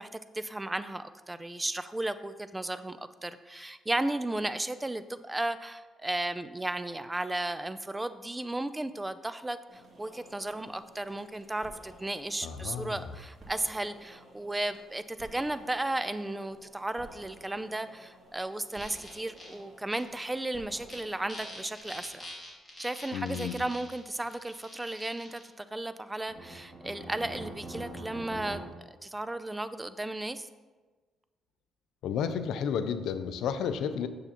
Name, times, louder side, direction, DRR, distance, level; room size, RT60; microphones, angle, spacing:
voice 1, 0.0-22.3 22.8-28.6 29.0-30.5, right 1 dB, 15° right, 12 dB, 0.4 m, -34 dB
sound 1, 9.7-22.1, right 1 dB, 40° right, 2.5 m, -54 dB
voice 2, 12.4-13.1 23.1-23.6 32.0-34.1, left 7 dB, 80° left, 10 dB, 0.5 m, -32 dB
sound 2, 18.7-19.5 19.9-20.0 20.7-21.0 21.3-25.4 26.3-28.6, equal, 15° left, 2.5 m, -44 dB
9.0 x 7.1 x 2.9 m, 1.3 s
cardioid pair, 100°, 0 cm